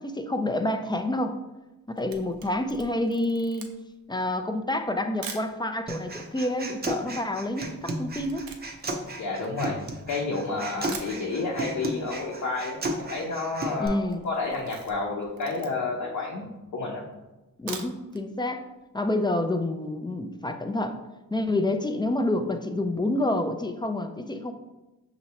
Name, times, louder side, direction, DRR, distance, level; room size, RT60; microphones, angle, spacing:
voice 1, 0.0-1.4 1.9-3.7 4.1-8.4 13.8-14.2 17.6-18.6 18.9-20.9 21.3-24.5, left 1 dB, 15° left, 7 dB, 0.3 m, -28 dB
Camera, 1.7-5.6 6.2-6.3 6.5-10.2 10.6-10.7 10.9-11.7 12.0-12.1 12.4-12.5 12.7-13.1 13.4-13.7 14.0-16.0 16.6-16.7 17.5-18.2 18.6-18.7 19.1-19.2, right 6 dB, 75° right, 0.6 m, -43 dB
Human voice, 5.9-13.9, right 1 dB, 30° right, 0.6 m, -34 dB
voice 2, 9.2-14.0 14.2-17.0, left 3 dB, 60° left, -3 dB, 0.8 m, -30 dB
5.4 x 2.9 x 2.9 m, 1.0 s
cardioid pair, 70°, 35 cm